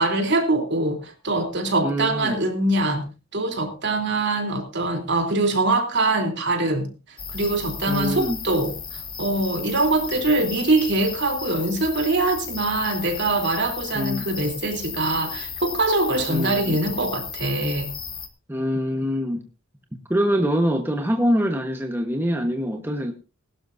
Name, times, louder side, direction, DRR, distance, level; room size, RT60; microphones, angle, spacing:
voice 1, 0.0-6.9 7.3-17.9, right 2 dB, 55° right, 3.4 m, -23 dB
voice 2, 1.8-2.4 7.9-8.4 13.9-14.2 16.3-16.8 18.5-19.4 20.1-23.1, equal, 10° right, 1.2 m, -24 dB
sound 1, 7.2-18.3, left 6 dB, 25° left, 1.8 m, -35 dB
21.0 x 12.0 x 2.7 m
head